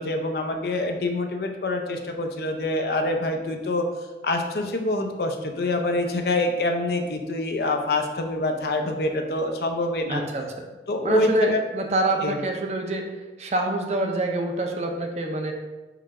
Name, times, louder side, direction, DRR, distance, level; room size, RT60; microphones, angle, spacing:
voice 1, 0.0-3.9 4.2-10.2 10.9-11.6 12.2-12.4, left 2 dB, 60° left, 4 dB, 0.5 m, -26 dB
voice 2, 10.1-10.4 11.0-13.1 13.4-15.5, right 1 dB, 35° right, 3 dB, 0.5 m, -26 dB
4.7 x 2.4 x 4.7 m, 1.2 s
head